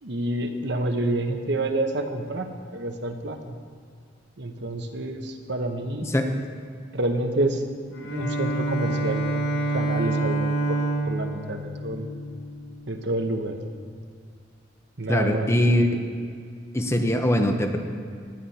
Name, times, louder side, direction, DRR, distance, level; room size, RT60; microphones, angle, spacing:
voice 1, 0.0-3.6 4.4-6.1 6.9-7.6 7.9-10.8 11.1-12.1 12.9-13.6 15.0-15.7, right 1 dB, 65° right, 5 dB, 1.2 m, -28 dB
voice 2, 6.0-6.3 15.1-16.0 16.7-17.8, left 1 dB, 15° left, 5 dB, 0.9 m, -22 dB
Bowed string instrument, 7.9-12.9, right 2 dB, 90° left, 4.0 m, -27 dB
17.5 x 11.0 x 4.3 m, 2.1 s
head